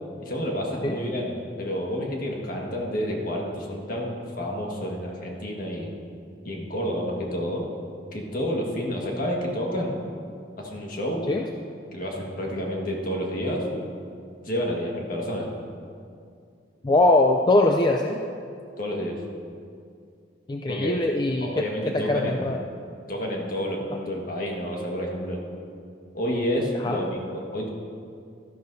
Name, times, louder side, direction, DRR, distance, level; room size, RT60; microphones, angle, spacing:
voice 1, 0.2-6.0 6.4-7.7 8.1-10.0 10.6-11.3 11.9-13.7 14.4-15.5 18.8-19.2 20.7-21.0 21.4-22.6 23.1-25.4 26.1-27.7, equal, 50° left, -1 dB, 1.6 m, -29 dB
voice 2, 16.8-18.2 20.5-21.7 21.9-22.6 26.8-27.1, left 2 dB, 25° left, 2 dB, 0.4 m, -22 dB
12.5 x 11.5 x 2.7 m, 2.3 s
head